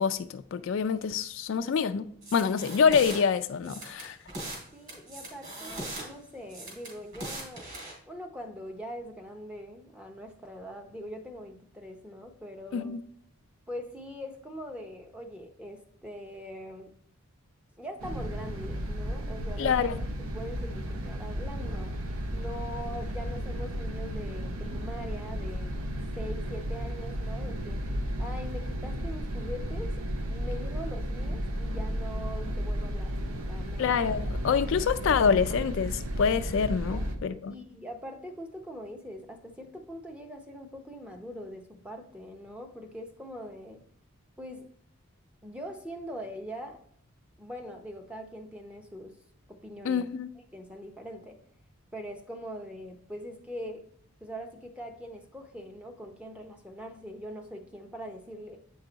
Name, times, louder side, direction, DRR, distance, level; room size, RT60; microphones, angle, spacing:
voice 1, 0.0-2.1 2.3-4.2 12.7-13.0 19.6-20.0 33.8-37.5 49.8-50.3, left 6 dB, 60° left, 0.3 m, -26 dB
sound 1, 2.2-3.2 3.6-4.6 4.9-6.0 6.5-7.9, right 1 dB, 40° right, 2.5 m, -39 dB
voice 2, 4.7-7.7 8.1-12.9 13.7-16.9 17.8-19.8 20.1-21.9 22.3-25.7 26.2-27.8 28.2-29.9 30.3-33.9 36.9-43.8 44.4-44.7 45.4-46.8 47.4-49.2 49.5-50.0 50.5-51.4 51.9-53.8 54.2-58.6, equal, 5° right, 0.6 m, -42 dB
sound 2, 18.0-37.2, equal, 75° right, 0.8 m, -33 dB
8.1 x 4.7 x 3.9 m
head